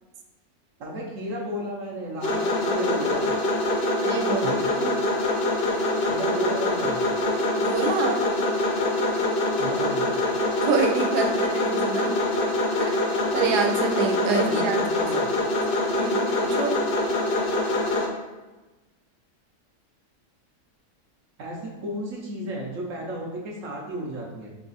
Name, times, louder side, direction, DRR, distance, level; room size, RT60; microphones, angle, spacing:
voice 1, 0.8-3.3 4.4-5.0 6.1-7.0 9.6-10.1 14.5-15.3 21.4-24.5, right 1 dB, 60° right, -2 dB, 1.0 m, -33 dB
sound 1, 2.2-18.1, left 2 dB, 55° left, 0.7 m, -24 dB
voice 2, 4.0-4.5 7.6-8.2 10.6-12.2 12.8-13.0 13.3-14.8 15.9-16.7, right 5 dB, 90° right, 2 dB, 1.2 m, -26 dB
4.8 x 2.3 x 3.9 m, 1.1 s
omnidirectional pair, 1.7 m